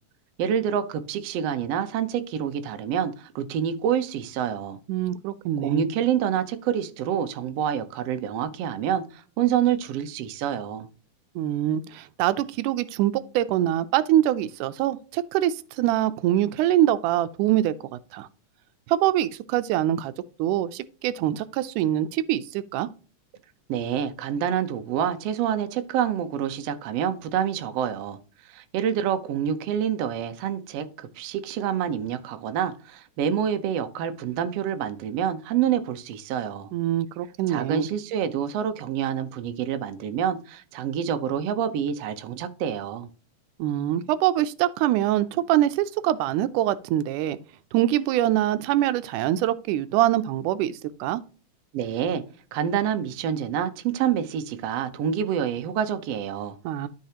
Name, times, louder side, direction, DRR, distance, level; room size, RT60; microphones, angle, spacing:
voice 1, 0.4-4.8 5.6-10.9 23.7-28.2 28.5-36.7 37.5-43.1 51.7-52.2 52.5-56.6, right 9 dB, 70° right, 1.7 m, -27 dB
voice 2, 4.9-5.9 11.4-18.3 18.9-20.1 20.4-22.9 36.7-37.9 43.6-47.4 47.7-51.2 56.6-56.9, right 13 dB, 90° right, 2.1 m, -24 dB
12.5 x 4.8 x 2.9 m
omnidirectional pair, 3.5 m